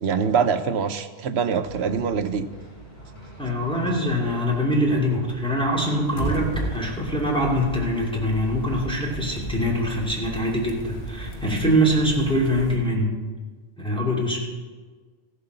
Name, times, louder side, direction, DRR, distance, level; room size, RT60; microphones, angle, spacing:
voice 1, 0.0-2.5, right 6 dB, 75° right, 10 dB, 1.0 m, -24 dB
sound 1, 1.6-12.5, right 2 dB, 30° left, 5.3 m, -44 dB
voice 2, 3.4-13.2 13.8-14.4, equal, 5° left, -4 dB, 2.5 m, -23 dB
sound 2, 6.0-12.8, equal, 50° left, 1.6 m, -34 dB
15.0 x 7.8 x 6.7 m, 1.4 s
omnidirectional pair, 1.1 m